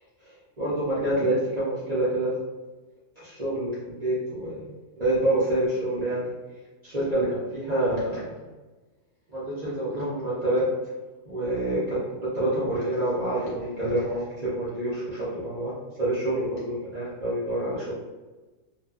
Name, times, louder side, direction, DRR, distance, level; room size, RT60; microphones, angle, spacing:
voice 1, 0.6-2.3 3.2-4.7 5.0-6.3 6.8-8.3 9.3-10.6 11.3-12.0 12.3-15.7 16.0-18.0, right 1 dB, 45° right, -10 dB, 0.5 m, -27 dB
2.6 x 2.3 x 2.3 m, 1.2 s
omnidirectional pair, 1.7 m